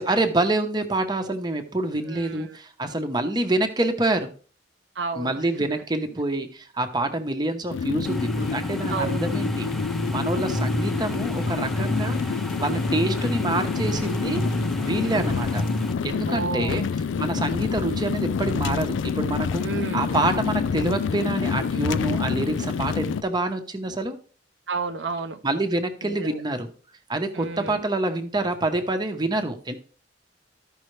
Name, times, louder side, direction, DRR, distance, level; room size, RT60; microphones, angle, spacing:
voice 1, 0.0-4.3 5.1-9.7 10.1-12.2 12.6-14.4 14.8-15.6 16.0-16.8 17.2-19.7 19.9-24.2 25.4-26.7 27.1-29.7, right 2 dB, 25° right, 6 dB, 0.9 m, -26 dB
voice 2, 2.1-2.6 5.0-5.4 8.9-9.3 15.0-15.4 16.3-16.9 19.6-20.2 24.7-25.4 26.0-26.4 27.3-27.8, right 4 dB, 70° right, 7 dB, 0.6 m, -32 dB
sound 1, 7.7-23.2, left 5 dB, 90° left, 0.4 m, -27 dB
sound 2, 8.0-15.9, equal, ahead, 0.6 m, -30 dB
13.5 x 5.5 x 3.2 m, 0.41 s
head